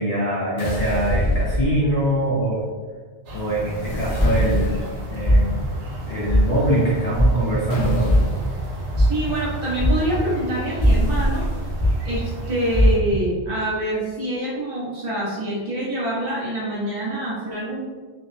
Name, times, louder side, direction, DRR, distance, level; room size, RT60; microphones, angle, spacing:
voice 1, 0.0-2.6 3.3-5.6 6.0-8.1, right 1 dB, 45° left, -8 dB, 0.5 m, -23 dB
sound 1, 0.6-2.2 3.6-5.2 7.7-8.5 10.8-11.9, equal, 85° left, 0.9 m, -25 dB
sound 2, 3.2-13.0, right 1 dB, 85° right, 0.9 m, -34 dB
sound 3, 4.2-4.7 5.2-5.7 6.3-6.7 7.1-7.6 8.0-8.5 8.9-9.4 9.8-10.4 10.8-11.2 11.8-12.2 12.7-13.2, equal, 10° right, 0.9 m, -18 dB
voice 2, 9.0-11.4 12.0-17.8, right 1 dB, 55° right, -7 dB, 1.1 m, -26 dB
2.4 x 2.1 x 2.6 m, 1.5 s
omnidirectional pair, 1.1 m